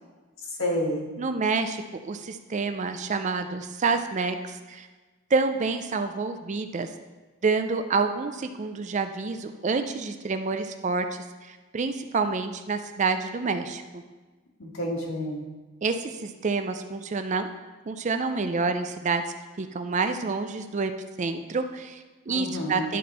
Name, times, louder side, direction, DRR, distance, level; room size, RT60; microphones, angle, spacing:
voice 1, 0.5-1.1 14.6-15.4 22.3-22.9, left 1 dB, 70° left, -1 dB, 1.7 m, -29 dB
voice 2, 1.2-4.9 5.3-6.9 7.4-14.0 15.8-17.5 17.9-19.2 19.6-20.9 21.2-23.0, right 4 dB, 35° right, 8 dB, 0.4 m, -28 dB
11.0 x 4.3 x 4.2 m, 1.3 s
head